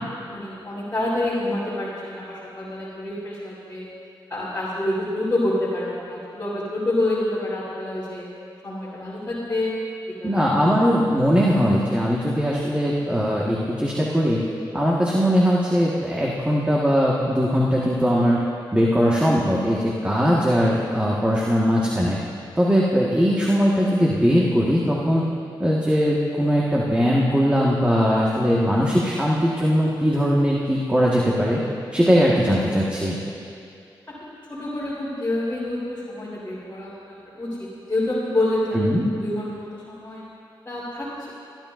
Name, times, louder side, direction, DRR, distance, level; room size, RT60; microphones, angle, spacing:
voice 1, 0.3-3.9 4.3-8.3 8.6-9.7 10.2-10.5 34.1-34.2 34.5-38.8 39.2-40.2 40.6-41.1, left 1 dB, 20° left, -10 dB, 3.5 m, -27 dB
voice 2, 10.2-14.4 14.7-18.4 18.7-22.2 22.5-25.2 25.6-31.6 31.9-33.2 38.7-39.0, equal, 15° right, -5 dB, 1.5 m, -20 dB
24.0 x 12.0 x 2.6 m, 2.5 s
cardioid pair, 60°, 9 cm